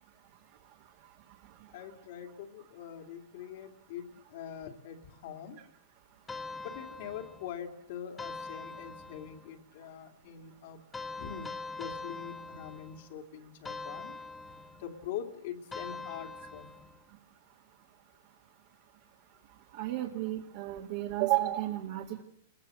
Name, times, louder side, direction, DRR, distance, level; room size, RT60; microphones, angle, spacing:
voice 1, 1.7-5.6 6.6-10.8 11.2-14.2 14.8-16.7, left 9 dB, 60° left, 3 dB, 2.7 m, -43 dB
sound 1, 6.3-7.6 8.2-9.5 10.9-13.1 13.6-14.9 15.7-17.0, left 3 dB, 10° left, 1.3 m, -43 dB
voice 2, 19.7-22.2, right 15 dB, 50° right, 0 dB, 2.1 m, -32 dB
28.5 x 22.0 x 7.8 m, 0.68 s
supercardioid pair, 160°, 0 cm